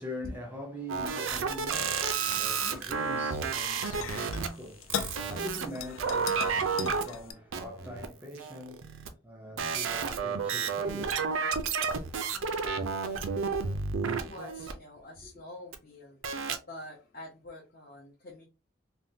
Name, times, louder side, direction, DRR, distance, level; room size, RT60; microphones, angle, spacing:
voice 1, 0.0-11.5 12.8-12.9 13.5-14.4, equal, 10° right, 0.6 m, -43 dB
sound 1, 0.9-4.5 4.9-5.7 6.0-7.0 7.5-8.1 8.4-9.1 9.6-14.7 15.7-15.8 16.2-16.6, right 5 dB, 80° right, 0.5 m, -31 dB
sound 2, 2.2-7.3, left 7 dB, 85° left, 0.4 m, -40 dB
voice 2, 2.3-2.9 12.3-13.4 14.0-16.2 16.5-18.4, left 1 dB, 45° left, 0.8 m, -47 dB
3.5 x 2.2 x 2.7 m
head